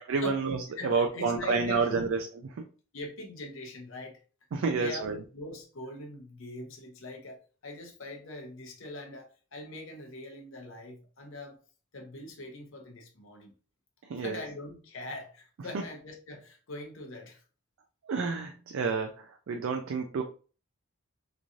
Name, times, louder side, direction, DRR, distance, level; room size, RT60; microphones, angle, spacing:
voice 1, 0.1-2.2 4.5-5.2 14.1-14.4 18.1-20.2, right 4 dB, 60° right, 4 dB, 0.3 m, -29 dB
voice 2, 0.8-2.1 2.9-4.2 4.8-11.6 11.9-13.6 14.2-17.4, left 2 dB, 60° left, 2 dB, 0.8 m, -43 dB
3.0 x 2.5 x 2.5 m, 0.38 s
head